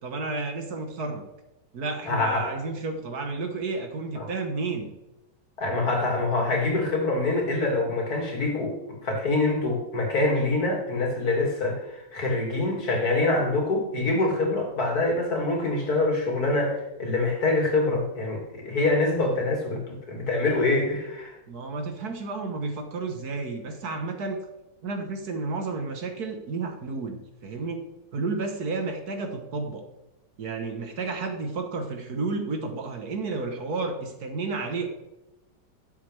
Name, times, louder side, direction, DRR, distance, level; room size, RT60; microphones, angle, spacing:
voice 1, 0.0-1.2 1.7-4.9 21.5-24.4 24.8-29.8 30.4-34.9, right 3 dB, 60° right, 5 dB, 1.7 m, -31 dB
voice 2, 2.0-2.5 4.1-4.3 5.6-21.4, left 2 dB, 55° left, 0 dB, 2.9 m, -25 dB
12.0 x 7.5 x 3.4 m, 0.96 s
omnidirectional pair, 1.9 m